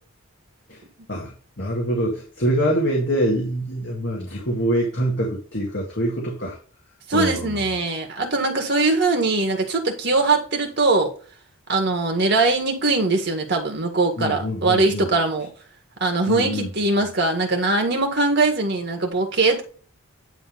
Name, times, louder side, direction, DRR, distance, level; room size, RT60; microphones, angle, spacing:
voice 1, 1.1-6.6 7.1-7.6 14.2-15.1 16.3-16.7, right 1 dB, 55° left, 2.0 m, -25 dB
voice 2, 7.1-11.1 11.7-15.5 16.0-19.6, right 3 dB, 50° right, 2.0 m, -21 dB
10.5 x 3.6 x 5.2 m
head